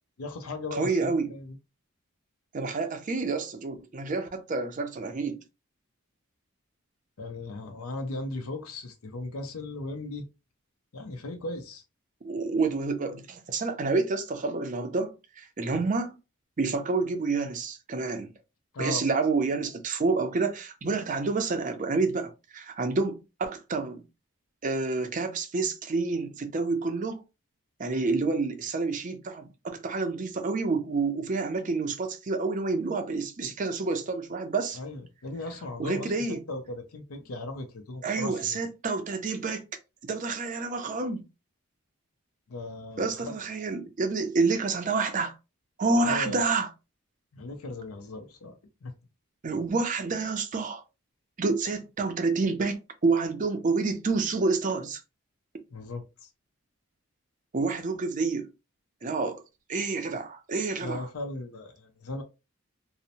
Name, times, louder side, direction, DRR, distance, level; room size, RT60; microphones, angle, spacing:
voice 1, 0.2-1.6 7.2-10.2 10.9-11.8 15.7-15.8 18.7-19.1 34.7-38.6 42.5-43.4 46.1-46.5 47.3-48.5 48.8-48.9 55.7-56.3 60.1-60.2 60.8-62.2, left 2 dB, 90° left, 0.6 m, -37 dB
voice 2, 0.7-1.3 2.5-5.4 12.2-16.2 16.6-18.3 18.8-24.0 24.6-27.2 27.8-34.8 35.8-36.4 38.0-39.6 40.0-41.2 43.0-45.4 45.8-46.7 49.4-50.8 51.4-52.8 53.0-55.0 57.5-58.5 59.0-59.4 59.7-61.1, right 3 dB, 35° right, 0.4 m, -28 dB
2.8 x 2.0 x 2.6 m
head